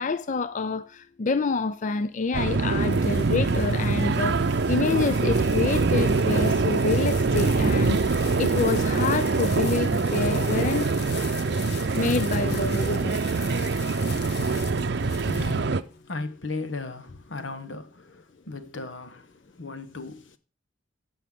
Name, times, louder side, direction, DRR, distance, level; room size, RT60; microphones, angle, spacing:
voice 1, 0.0-10.9 12.0-13.2, left 4 dB, 40° left, 0.4 m, -27 dB
sound 1, 2.2-16.0, left 8 dB, 60° left, 1.0 m, -42 dB
sound 2, 2.3-15.8, right 3 dB, 60° right, 0.6 m, -24 dB
voice 2, 14.8-20.4, left 3 dB, 80° left, 1.2 m, -37 dB
16.0 x 5.6 x 3.7 m
head